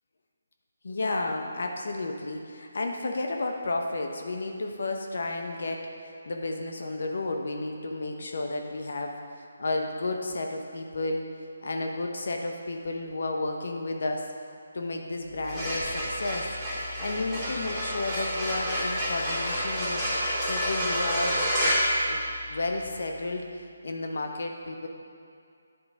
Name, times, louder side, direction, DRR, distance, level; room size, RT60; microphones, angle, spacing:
voice 1, 0.8-11.3 11.6-14.3 14.7-16.5 17.0-20.0 20.5-24.9, left 2 dB, 65° left, 3 dB, 0.6 m, -32 dB
sound 1, 15.3-22.8, equal, 5° left, 1.7 m, -29 dB
10.0 x 4.7 x 3.6 m, 2.4 s
figure-of-eight pair, 160°, 0 cm